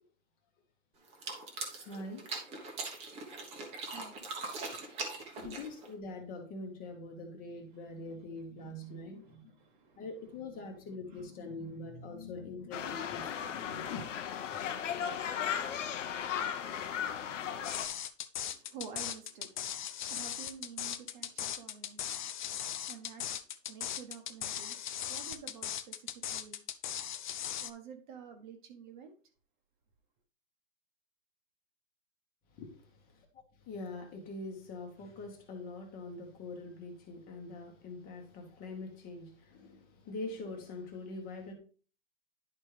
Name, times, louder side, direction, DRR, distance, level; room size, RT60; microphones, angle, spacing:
sound 1, 1.1-5.9, right 3 dB, 15° right, 1.1 m, -41 dB
voice 1, 1.8-2.2 5.4-9.5 10.0-14.0 32.6-32.7 33.1-33.3 33.6-41.5, left 2 dB, 20° left, 1.3 m, -43 dB
voice 2, 3.9-4.2 4.6-4.8 5.2-5.6 7.7-8.2 8.8-10.1 11.1-11.3 11.7-11.8 18.4-23.3 23.7-26.6 27.6-29.1, right 6 dB, 35° right, 1.2 m, -51 dB
sound 2, 12.7-17.9, left 8 dB, 65° left, 0.9 m, -36 dB
sound 3, 17.6-27.7, left 10 dB, 40° left, 0.5 m, -38 dB
10.5 x 4.3 x 3.3 m
hypercardioid pair, 150°, 39 cm